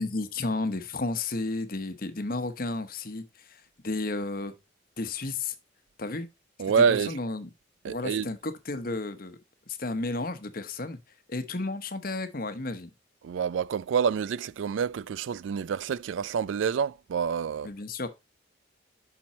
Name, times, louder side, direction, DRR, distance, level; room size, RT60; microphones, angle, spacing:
voice 1, 0.0-4.6 5.0-5.5 6.0-6.3 6.8-7.5 7.9-9.4 9.7-11.0 11.3-12.9 17.6-18.1, left 2 dB, 45° left, 1.0 m, -32 dB
voice 2, 6.6-7.1 7.8-8.3 13.2-17.7, right 6 dB, 80° right, 0.3 m, -27 dB
7.4 x 6.1 x 4.0 m
head